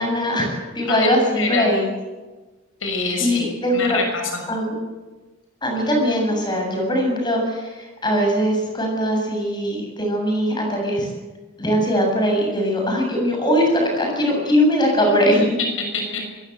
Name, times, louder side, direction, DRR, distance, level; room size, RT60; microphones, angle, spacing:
voice 1, 0.0-1.9 3.2-4.0 4.5-4.7 5.6-11.1 11.6-15.4, equal, 20° left, 1 dB, 8.0 m, -21 dB
voice 2, 1.4-1.7 2.8-3.4 3.7-4.4 15.0-15.1 15.9-16.2, left 3 dB, 75° left, 3 dB, 6.5 m, -25 dB
24.5 x 21.5 x 8.3 m, 1.2 s
head